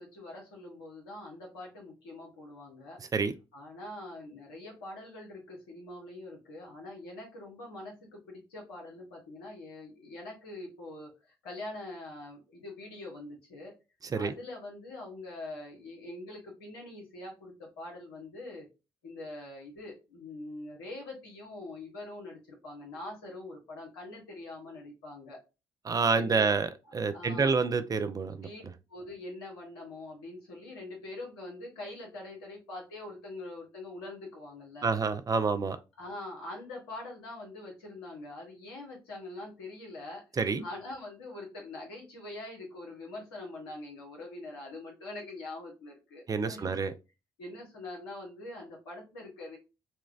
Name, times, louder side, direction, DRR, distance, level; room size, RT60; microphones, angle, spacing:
voice 1, 0.0-3.0 3.5-13.7 14.1-18.7 19.0-25.4 26.1-26.5 27.1-27.6 28.4-28.6 28.9-34.9 36.0-40.2 40.6-46.7 47.4-49.6, left 2 dB, 80° left, 1.1 m, -44 dB
voice 2, 14.0-14.3 25.8-28.5 34.8-35.8 40.4-40.6 46.3-46.9, right 4 dB, 30° right, 0.5 m, -28 dB
4.2 x 2.2 x 2.4 m
hypercardioid pair, 45°, 12 cm